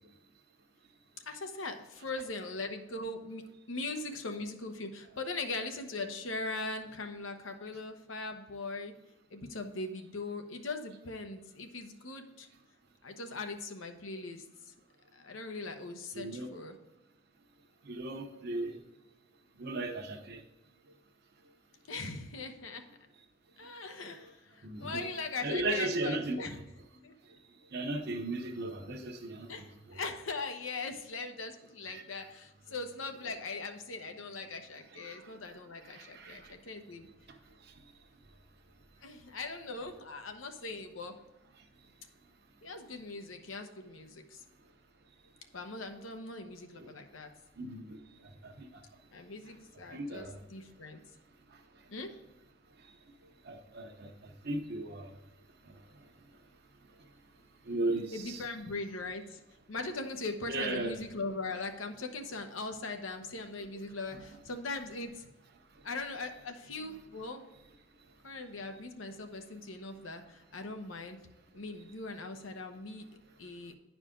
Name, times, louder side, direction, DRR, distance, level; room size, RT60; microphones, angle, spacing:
voice 1, 1.3-8.9 9.3-12.5 13.0-14.7 15.1-16.7 21.9-22.8 23.6-26.6 27.0-27.1 29.5-37.1 39.0-41.1 42.6-44.4 45.5-47.3 49.1-51.0 51.9-52.2 58.1-59.4 59.7-65.3 65.8-67.4 68.2-71.2 71.5-73.1 73.4-73.7, left 3 dB, 85° left, 5 dB, 1.0 m, -40 dB
voice 2, 16.1-16.5 17.8-18.8 19.6-20.4 24.6-25.0 25.4-26.6 27.7-29.5 29.9-30.0 31.9-32.0 34.9-35.3 35.8-36.5 47.6-48.0 48.4-48.7 49.9-50.4 53.4-55.1 57.7-58.4 60.5-60.9, right 2 dB, 55° right, 3 dB, 0.9 m, -36 dB
10.0 x 4.9 x 3.8 m, 1.0 s
head